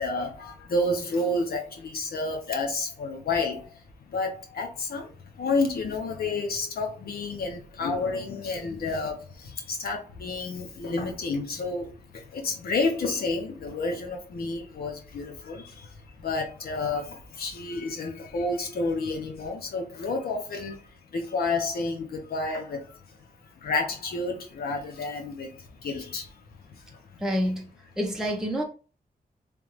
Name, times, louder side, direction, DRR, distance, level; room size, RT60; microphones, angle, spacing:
voice 1, 0.0-23.0 23.4-27.2, left 3 dB, 75° left, 1.1 m, -30 dB
voice 2, 27.2-27.7 28.0-28.6, equal, 5° right, 0.6 m, -27 dB
3.4 x 3.4 x 3.2 m
wide cardioid pair, 180°, 16 cm